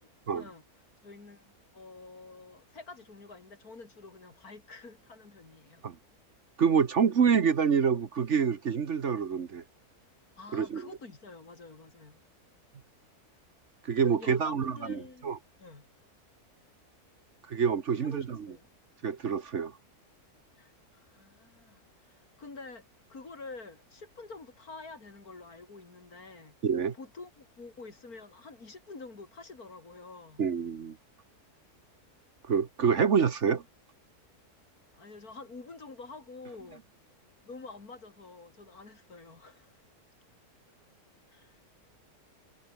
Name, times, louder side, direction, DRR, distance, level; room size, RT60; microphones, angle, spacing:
voice 1, 1.0-5.8 10.4-12.2 14.0-15.3 15.6-15.9 18.0-18.7 20.6-26.6 26.9-30.4 34.9-36.8 37.4-39.8 41.3-41.6, left 3 dB, 70° left, 4.0 m, -48 dB
voice 2, 6.6-9.6 10.5-10.9 13.9-14.7 15.2-15.4 17.5-18.2 19.0-19.7 26.6-26.9 30.4-31.0 32.5-33.6, right 6 dB, 50° right, 1.4 m, -26 dB
omnidirectional pair, 1.6 m